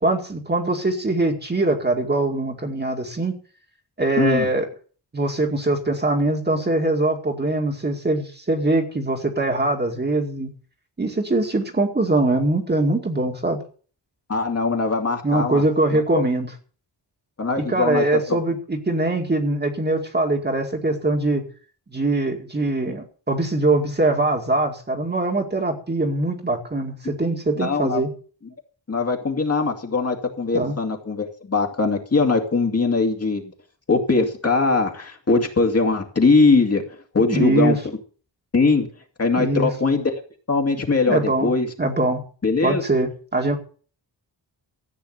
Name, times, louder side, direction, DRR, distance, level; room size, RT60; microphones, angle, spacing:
voice 1, 0.0-3.3 4.0-4.7 5.1-10.5 11.0-13.6 15.2-16.5 17.7-21.5 21.9-28.1 30.5-30.7 37.3-37.8 39.4-39.7 41.1-41.5 41.8-42.2 42.6-43.6, right 2 dB, 25° right, 3 dB, 2.2 m, -22 dB
voice 2, 4.2-4.5 14.3-15.6 15.9-16.0 17.4-18.4 27.0-27.1 27.6-28.0 28.9-33.5 33.9-36.8 37.1-37.8 38.5-38.9 39.2-40.2 40.5-41.7 42.4-42.8, left 3 dB, 35° left, 3 dB, 2.4 m, -21 dB
14.5 x 9.0 x 6.6 m, 0.42 s
wide cardioid pair, 150°, 43 cm